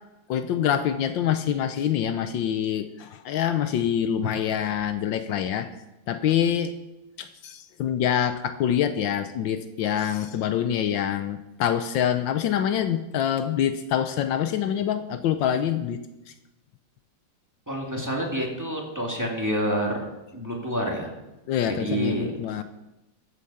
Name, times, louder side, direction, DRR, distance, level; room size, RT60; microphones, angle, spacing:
voice 1, 0.3-5.7 6.1-6.7 7.2-16.0 21.5-22.6, left 9 dB, 75° left, 10 dB, 1.4 m, -25 dB
voice 2, 17.7-20.0 20.3-21.1 21.7-22.3, right 1 dB, 10° right, -2 dB, 2.4 m, -28 dB
14.0 x 8.3 x 5.7 m, 0.96 s
omnidirectional pair, 2.1 m